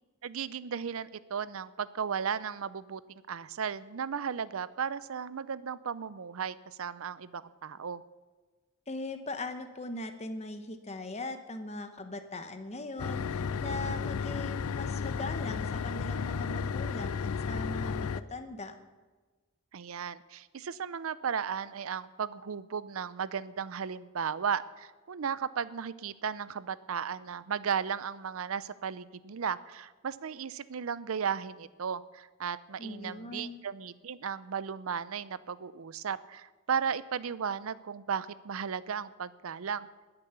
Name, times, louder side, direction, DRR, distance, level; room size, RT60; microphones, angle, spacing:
voice 1, 0.2-3.0 3.3-8.0 19.7-39.9, right 7 dB, 75° right, 17 dB, 0.5 m, -35 dB
voice 2, 8.9-18.7 32.8-33.6, left 2 dB, 30° left, 8 dB, 1.0 m, -40 dB
sound 1, 13.0-18.2, left 6 dB, 85° left, 0.4 m, -33 dB
20.5 x 6.9 x 6.9 m, 1.3 s
head